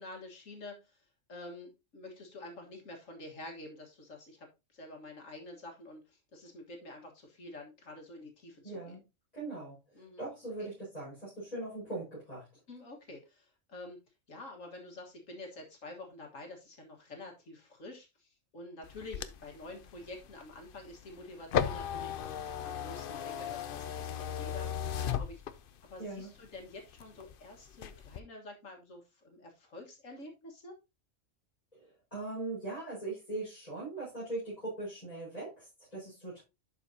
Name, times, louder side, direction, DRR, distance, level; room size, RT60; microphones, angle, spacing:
voice 1, 0.0-9.0 10.0-10.3 10.6-10.7 12.7-14.0 14.3-25.4 25.8-30.7, left 2 dB, 80° left, 2 dB, 2.0 m, -48 dB
voice 2, 8.6-9.0 9.3-12.5 26.0-26.3 31.7-31.8 32.1-36.4, right 2 dB, 30° left, -8 dB, 5.4 m, -40 dB
sound 1, 18.8-25.9 26.4-27.4 27.7-28.2, left 8 dB, 55° left, 0.7 m, -36 dB
11.5 x 5.0 x 2.8 m, 0.25 s
omnidirectional pair, 1.3 m